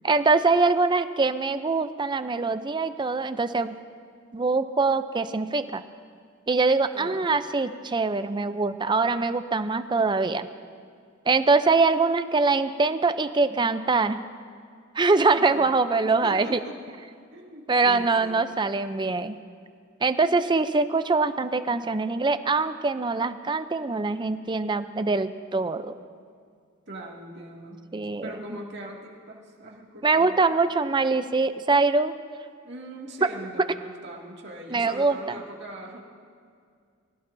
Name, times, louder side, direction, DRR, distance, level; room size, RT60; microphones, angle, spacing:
voice 1, 0.0-3.8 4.3-5.8 6.5-10.5 11.3-14.2 15.0-16.6 17.7-19.4 20.0-25.9 27.9-28.3 30.0-32.1 34.7-35.2, right 3 dB, 25° right, 11 dB, 0.5 m, -23 dB
voice 2, 6.9-7.3 15.3-15.8 16.0-16.8 17.3-18.4 26.9-27.9 28.2-30.4 32.6-36.0, right 1 dB, 60° right, -2 dB, 2.1 m, -41 dB
24.0 x 17.5 x 2.7 m, 2.2 s
head